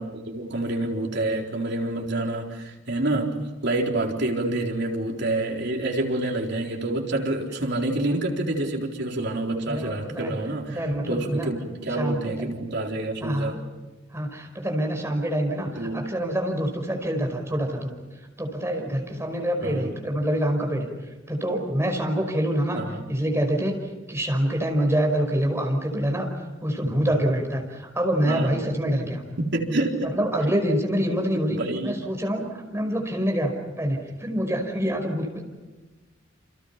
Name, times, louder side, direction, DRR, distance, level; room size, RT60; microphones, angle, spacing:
voice 1, 0.0-10.8 11.1-13.6 15.8-16.1 19.6-19.9 22.7-23.1 28.2-28.6 29.4-30.1 31.5-31.9, right 2 dB, 60° right, 1 dB, 4.1 m, -27 dB
voice 2, 9.7-10.4 10.7-11.5 12.0-12.5 13.2-13.6 14.1-17.9 18.4-20.9 21.3-22.8 23.1-23.8 24.1-26.3 26.6-29.2 30.0-35.4, equal, 15° right, 2 dB, 5.3 m, -26 dB
29.5 x 28.0 x 5.9 m, 1.2 s
head